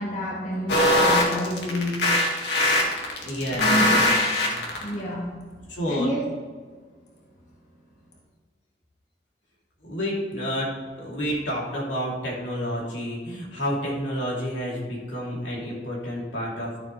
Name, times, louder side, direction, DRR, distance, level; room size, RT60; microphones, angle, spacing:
voice 1, 0.0-2.1 3.1-3.2 3.5-4.1 4.5-5.3 5.9-6.2 6.6-6.8, equal, 40° left, -3 dB, 1.7 m, -29 dB
sound 1, 0.7-4.9, left 1 dB, 65° left, 1.8 m, -21 dB
voice 2, 3.2-4.0 5.7-6.1 9.8-10.7 11.0-16.8, equal, 85° left, -4 dB, 3.1 m, -29 dB
12.0 x 7.3 x 3.3 m, 1.5 s
head